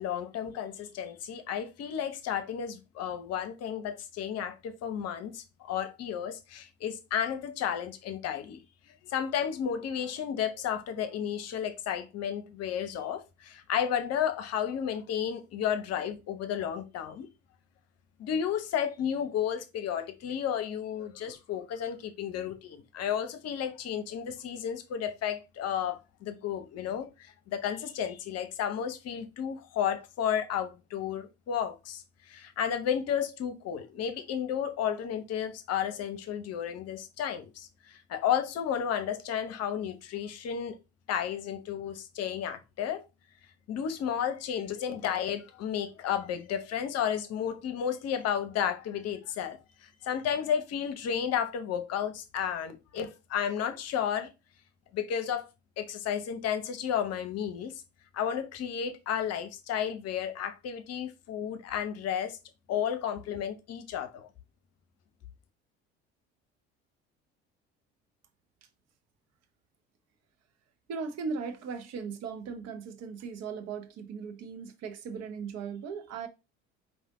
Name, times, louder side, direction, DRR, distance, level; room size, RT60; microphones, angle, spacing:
voice 1, 0.0-8.6 9.0-17.3 18.2-40.8 41.1-43.0 43.7-54.3 54.9-55.5 55.8-57.7 58.1-62.4 62.7-64.3, left 8 dB, 50° left, 0.8 m, -32 dB
voice 2, 70.9-76.3, right 5 dB, 50° right, 0.9 m, -38 dB
4.9 x 2.6 x 3.6 m
hypercardioid pair, 60°, 32 cm